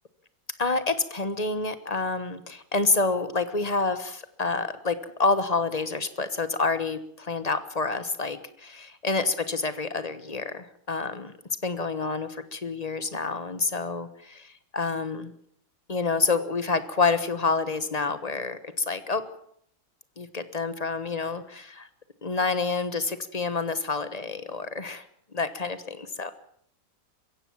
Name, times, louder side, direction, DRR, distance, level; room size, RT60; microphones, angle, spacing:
voice 1, 0.6-11.3 11.6-15.3 15.9-19.3 20.2-21.9 22.2-25.1 25.3-26.3, left 3 dB, 25° left, 12 dB, 1.0 m, -28 dB
22.5 x 16.0 x 7.3 m, 0.67 s
omnidirectional pair, 2.0 m